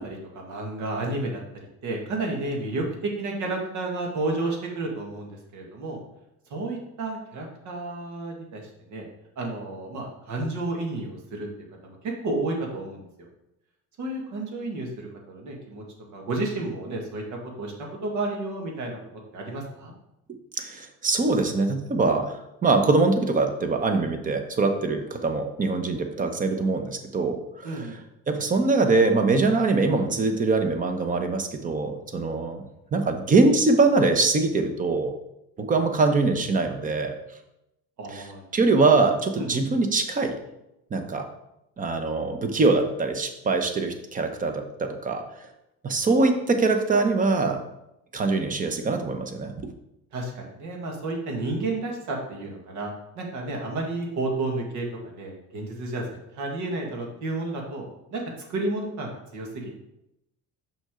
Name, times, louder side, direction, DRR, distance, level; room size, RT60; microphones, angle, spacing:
voice 1, 0.0-1.4 1.8-6.0 6.5-9.0 9.4-11.5 11.8-13.1 14.0-15.8 16.1-17.2 17.6-17.7 18.0-19.0 19.3-19.9 27.6-28.0 38.0-38.4 39.4-39.6 50.1-52.9 53.2-59.8, right 2 dB, 65° right, 0 dB, 1.9 m, -31 dB
voice 2, 20.6-27.8 28.3-32.6 32.9-35.1 35.6-37.2 38.1-38.2 38.5-40.4 40.9-41.3 41.8-45.2 45.8-47.6 48.1-49.5, right 3 dB, 25° right, 6 dB, 0.9 m, -23 dB
6.0 x 5.7 x 3.8 m, 0.86 s
cardioid pair, 125°, 32 cm